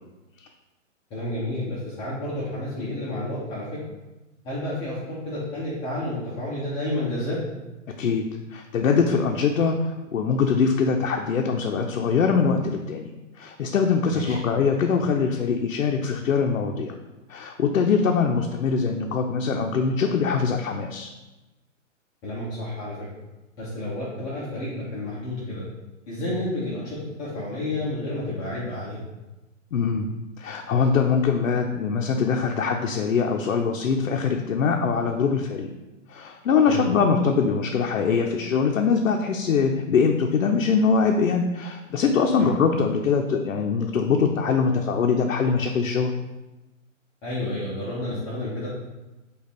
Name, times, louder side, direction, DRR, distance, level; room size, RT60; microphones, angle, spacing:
voice 1, 1.1-3.8 4.4-7.4 14.1-14.4 22.2-23.1 23.6-25.6 26.1-29.0 36.7-36.9 42.4-42.5 47.2-48.7, left 1 dB, 10° left, -8 dB, 0.4 m, -30 dB
voice 2, 8.0-13.1 13.4-16.9 17.3-21.1 29.7-30.1 30.4-35.7 36.1-46.1, left 5 dB, 90° left, 2 dB, 0.5 m, -23 dB
5.2 x 2.3 x 4.2 m, 1.1 s
hypercardioid pair, 130°, 39 cm